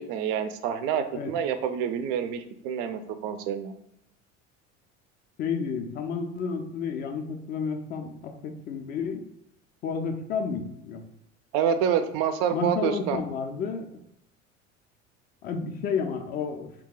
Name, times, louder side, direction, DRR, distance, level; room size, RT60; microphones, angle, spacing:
voice 1, 0.0-3.7 11.5-13.2, right 8 dB, 40° right, 9 dB, 0.4 m, -27 dB
voice 2, 5.4-9.2 9.8-11.0 12.5-13.9 15.4-16.7, left 5 dB, 25° left, 5 dB, 0.3 m, -31 dB
2.8 x 2.2 x 3.7 m, 0.78 s
figure-of-eight pair, 70°, 38 cm